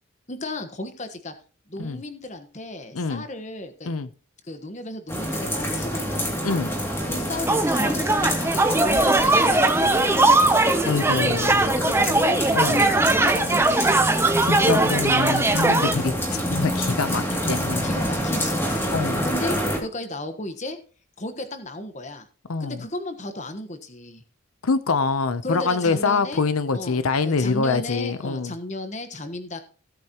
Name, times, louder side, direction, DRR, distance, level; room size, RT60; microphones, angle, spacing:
voice 1, 0.3-1.3 1.7-3.9 4.5-6.2 7.1-10.1 10.4-10.6 11.6-12.4 12.7-13.6 13.8-14.1 17.8-18.9 19.2-20.8 21.2-22.3 22.6-24.2 25.4-26.4 26.7-29.6, left 1 dB, 35° left, 1.2 m, -34 dB
sound 1, 5.1-19.8, equal, 10° left, 2.5 m, -27 dB
sound 2, 7.5-15.9, right 2 dB, 10° right, 0.6 m, -20 dB
voice 2, 10.8-11.6 12.5-12.8 14.4-17.9 18.9-19.2 22.5-22.8 24.6-28.5, left 4 dB, 85° left, 0.7 m, -25 dB
16.0 x 8.4 x 3.0 m
head